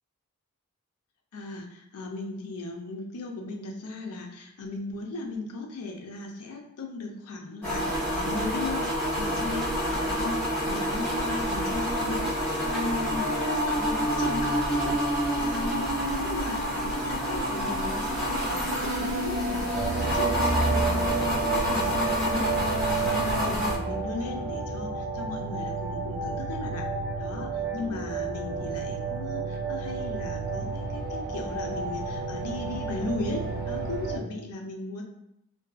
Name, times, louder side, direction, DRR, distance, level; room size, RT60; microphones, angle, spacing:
voice 1, 1.3-10.4 10.7-12.4 12.6-26.9 27.2-35.0, left 3 dB, 85° left, 2 dB, 0.5 m, -37 dB
sound 1, 7.6-23.8, equal, 5° left, 0.9 m, -28 dB
sound 2, 19.7-34.2, right 4 dB, 40° right, 0.5 m, -31 dB
2.6 x 2.2 x 2.4 m, 0.81 s
head